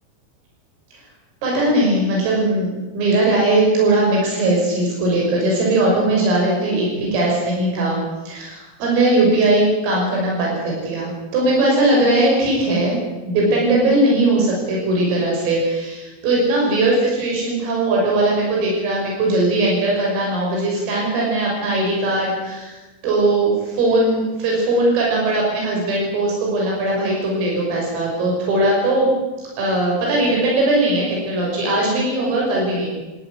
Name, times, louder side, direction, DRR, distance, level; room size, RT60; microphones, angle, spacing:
voice 1, 1.4-8.0 8.3-22.8 23.0-29.1 29.6-32.9, right 2 dB, 85° right, -2 dB, 9.0 m, -19 dB
19.0 x 16.5 x 9.9 m, 1.1 s
omnidirectional pair, 5.9 m